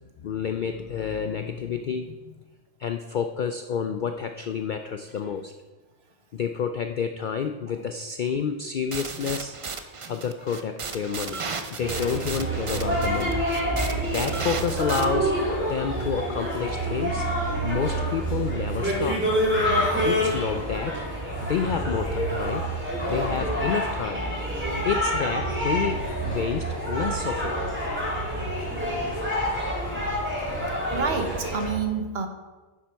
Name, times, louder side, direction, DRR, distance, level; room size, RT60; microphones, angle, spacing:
voice 1, 0.2-2.4 2.8-5.5 6.3-9.5 10.1-11.4 11.7-13.4 14.1-15.4 15.7-17.3 17.6-19.3 20.0-21.0 21.4-22.7 23.1-24.2 24.8-27.6, left 7 dB, 65° left, 8 dB, 0.5 m, -29 dB
sound 1, 8.9-15.0, right 4 dB, 35° right, 0.5 m, -35 dB
sound 2, 11.8-31.7, right 1 dB, 10° right, 3.2 m, -27 dB
voice 2, 30.9-32.3, right 5 dB, 55° right, 5 dB, 1.2 m, -29 dB
10.5 x 7.3 x 4.6 m, 1.2 s
omnidirectional pair, 1.3 m